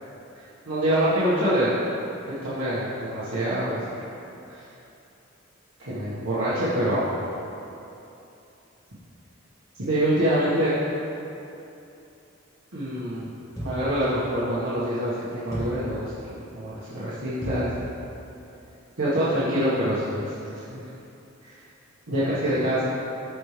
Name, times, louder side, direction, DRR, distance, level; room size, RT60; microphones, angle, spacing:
voice 1, 0.3-1.7 2.2-3.8 4.5-4.6 5.9-7.1 9.9-10.7 12.7-13.3 13.6-17.7 19.0-20.8 21.4-21.5 22.1-22.8, right 1 dB, 85° right, -12 dB, 1.7 m, -25 dB
sound 1, 13.6-14.0 15.5-15.9 17.4-17.8, equal, 15° left, 1.7 m, -34 dB
14.0 x 4.7 x 3.4 m, 2.9 s
head